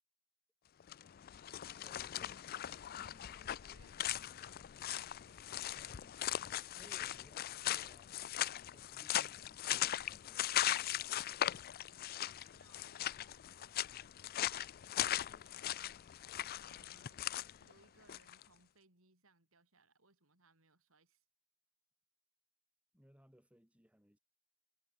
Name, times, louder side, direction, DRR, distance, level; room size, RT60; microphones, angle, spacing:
sound 1, 0.8-18.4, left 12 dB, 45° left, 0.4 m, -39 dB
voice 1, 1.8-2.4 5.7-6.2 6.7-8.2 8.7-11.0 22.9-24.2, equal, 5° right, 4.0 m, -65 dB
voice 2, 3.0-5.6 8.8-9.1 11.8-13.8 16.5-17.3 17.6-21.2, right 2 dB, 70° right, 5.3 m, -69 dB
head